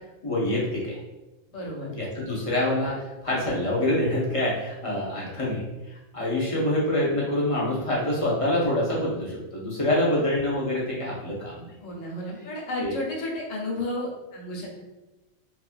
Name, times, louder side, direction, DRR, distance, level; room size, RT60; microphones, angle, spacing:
voice 1, 0.2-1.0 1.9-11.7 12.8-12.9, left 1 dB, 40° left, -5 dB, 0.5 m, -26 dB
voice 2, 1.5-1.9 2.3-2.4 9.9-10.2 11.8-14.8, left 1 dB, 85° left, -3 dB, 1.1 m, -33 dB
2.7 x 2.3 x 2.4 m, 1.0 s
omnidirectional pair, 1.3 m